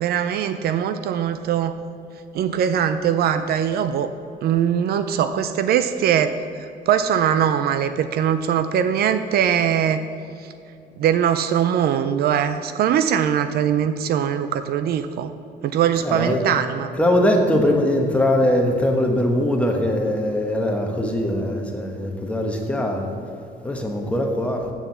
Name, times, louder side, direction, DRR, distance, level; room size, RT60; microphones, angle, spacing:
voice 1, 0.0-1.8 2.3-4.1 4.4-6.3 6.6-10.0 10.4-10.5 11.0-15.3 15.6-16.9, right 9 dB, 65° right, 10 dB, 0.4 m, -21 dB
voice 2, 16.0-16.4 17.0-23.1 23.6-24.7, left 1 dB, 5° left, 1 dB, 1.1 m, -21 dB
7.3 x 6.7 x 7.1 m, 2.6 s
cardioid pair, 145°, 17 cm